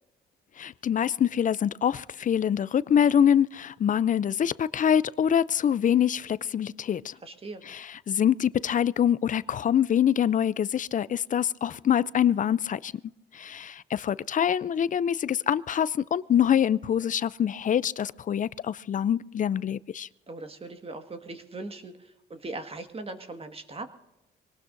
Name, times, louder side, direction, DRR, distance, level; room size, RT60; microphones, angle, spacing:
voice 1, 0.6-7.1 7.7-12.9 13.3-20.1, left 9 dB, 40° left, 0.5 m, -25 dB
voice 2, 7.2-7.6 20.3-23.9, right 2 dB, 30° right, 1.7 m, -39 dB
24.5 x 18.5 x 2.6 m
cardioid pair, 90°, 20 cm